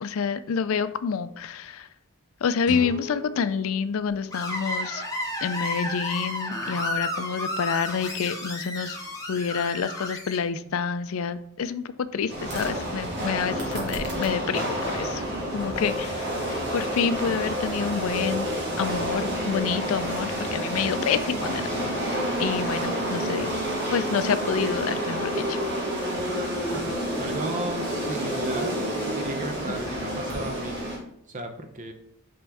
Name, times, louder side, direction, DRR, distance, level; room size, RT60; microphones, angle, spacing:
voice 1, 0.0-1.9 2.4-5.1 5.4-9.0 9.3-15.2 15.5-18.5 18.8-23.5 23.9-25.6, left 6 dB, 65° left, 13 dB, 0.4 m, -28 dB
Guitar, 2.6-5.4, left 3 dB, 50° left, 1.5 m, -41 dB
Screech, 4.3-10.4, left 1 dB, 15° left, 0.9 m, -32 dB
sound 1, 12.3-31.0, equal, 50° right, 1.9 m, -29 dB
voice 2, 26.7-30.9 31.3-31.9, right 1 dB, 35° right, 6 dB, 0.7 m, -35 dB
5.7 x 5.3 x 3.5 m, 0.74 s
head